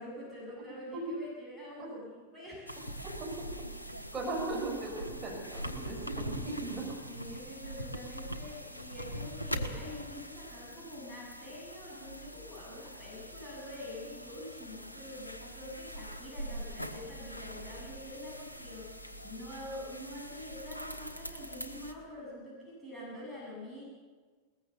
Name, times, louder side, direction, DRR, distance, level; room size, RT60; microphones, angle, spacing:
voice 1, 0.0-2.8 7.1-23.8, left 1 dB, 5° left, -6 dB, 8.0 m, -46 dB
sound 1, 2.7-21.9, equal, 85° left, 1.3 m, -43 dB
voice 2, 4.1-6.8, right 3 dB, 15° right, -1 dB, 6.2 m, -37 dB
21.5 x 19.5 x 6.9 m, 1.5 s
figure-of-eight pair, 90°, 0 cm